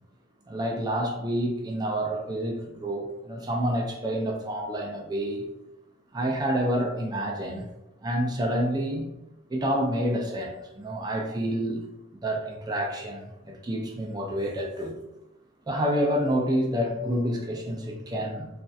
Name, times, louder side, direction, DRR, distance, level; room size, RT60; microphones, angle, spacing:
voice 1, 0.5-5.5 6.1-7.7 8.0-9.1 9.5-11.8 12.2-15.0 15.7-18.5, equal, 20° right, 1 dB, 0.4 m, -28 dB
3.2 x 2.6 x 2.3 m, 0.92 s
head